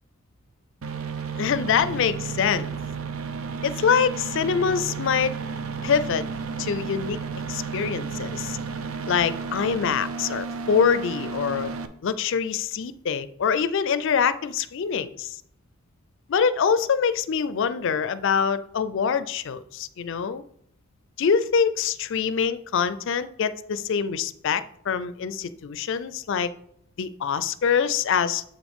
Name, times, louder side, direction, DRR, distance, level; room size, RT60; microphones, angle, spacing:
sound 1, 0.8-11.9, right 5 dB, 85° right, 0.6 m, -32 dB
voice 1, 1.4-2.7 3.6-5.3 5.8-6.2 6.6-7.2 7.5-8.6 9.1-11.7 12.0-15.4 16.3-20.4 21.2-26.5 27.0-28.4, left 6 dB, 65° left, 15 dB, 0.4 m, -24 dB
7.3 x 6.1 x 3.6 m, 0.70 s
head